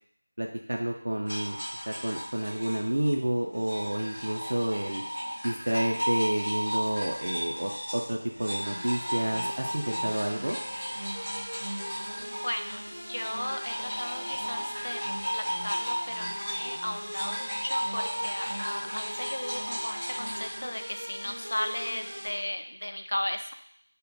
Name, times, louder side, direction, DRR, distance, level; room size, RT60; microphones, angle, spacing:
voice 1, 0.4-1.6 1.9-5.0 5.4-10.6, right 1 dB, 45° right, 1 dB, 0.4 m, -30 dB
sound 1, 1.2-12.8 13.1-20.6, equal, 15° left, 1.2 m, -35 dB
sound 2, 8.6-22.3, equal, 20° right, 0.9 m, -41 dB
voice 2, 12.2-15.0 15.3-23.5, left 1 dB, 70° left, 6 dB, 0.4 m, -36 dB
5.0 x 2.1 x 2.5 m, 0.65 s
figure-of-eight pair, 180°, 0 cm